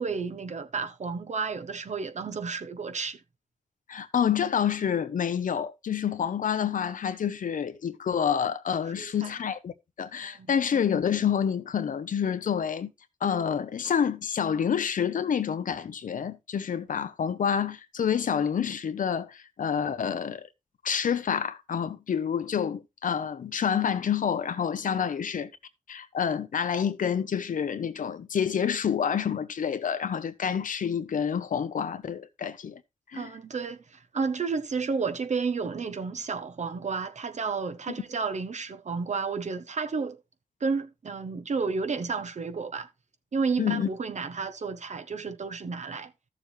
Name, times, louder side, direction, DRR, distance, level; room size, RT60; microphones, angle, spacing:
voice 1, 0.0-3.2 9.0-9.3 10.2-10.5 33.1-40.2 40.6-42.9 43.3-46.1, right 5 dB, 60° right, 1.1 m, -31 dB
voice 2, 3.9-9.7 10.0-12.9 13.2-20.5 20.8-25.5 25.9-32.8 33.1-33.3 43.6-43.9, left 8 dB, 80° left, 0.8 m, -28 dB
13.5 x 6.9 x 3.2 m
cardioid pair, 75°, 14 cm